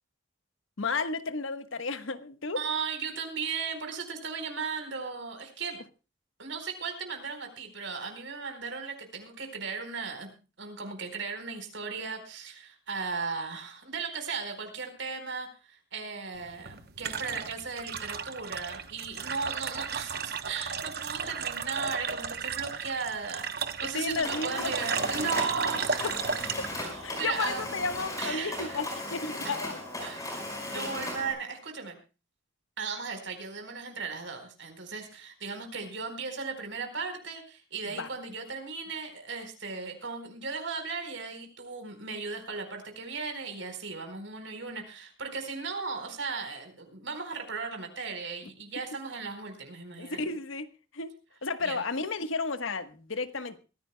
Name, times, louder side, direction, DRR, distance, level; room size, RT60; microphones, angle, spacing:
voice 1, 0.8-2.6 23.8-24.7 26.0-26.1 27.0-29.8 30.7-30.9 38.0-38.1 50.0-51.1 51.4-53.6, left 4 dB, 85° left, 1.3 m, -33 dB
voice 2, 2.5-5.8 6.4-10.3 10.6-23.5 23.8-26.1 26.7-27.7 28.2-28.8 30.0-32.0 32.8-50.3 51.6-51.8, right 5 dB, 75° right, 4.4 m, -36 dB
sound 1, 16.4-28.1, right 6 dB, 50° right, 0.9 m, -35 dB
Mechanisms, 24.2-31.3, left 1 dB, 15° left, 5.1 m, -37 dB
22.5 x 15.5 x 2.2 m
head